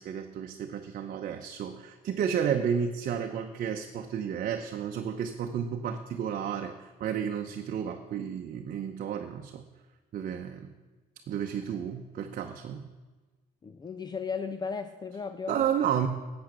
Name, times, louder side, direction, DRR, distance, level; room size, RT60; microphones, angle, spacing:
voice 1, 0.0-9.6 10.1-10.7 11.3-12.9 15.5-16.1, right 8 dB, 55° right, 4 dB, 0.8 m, -32 dB
voice 2, 13.6-15.6, left 5 dB, 25° left, 10 dB, 0.5 m, -35 dB
11.5 x 7.8 x 6.6 m, 1.3 s
cardioid pair, 110°, 17 cm